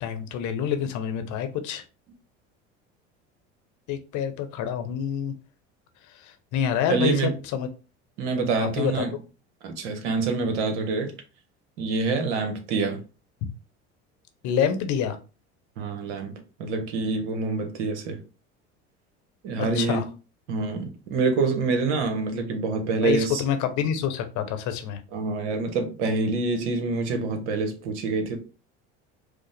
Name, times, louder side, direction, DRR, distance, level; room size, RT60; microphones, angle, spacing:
voice 1, 0.0-1.8 3.9-5.3 6.5-7.7 8.6-9.0 14.4-15.2 19.8-20.0 23.0-25.0, left 8 dB, 55° left, 0.8 m, -27 dB
voice 2, 6.9-7.3 8.2-9.1 9.6-11.1 11.8-13.0 15.8-16.3 16.6-18.2 19.4-20.1 20.5-23.4 25.1-28.4, right 4 dB, 75° right, 1.0 m, -26 dB
5.0 x 2.0 x 3.3 m
hypercardioid pair, 75°, 35 cm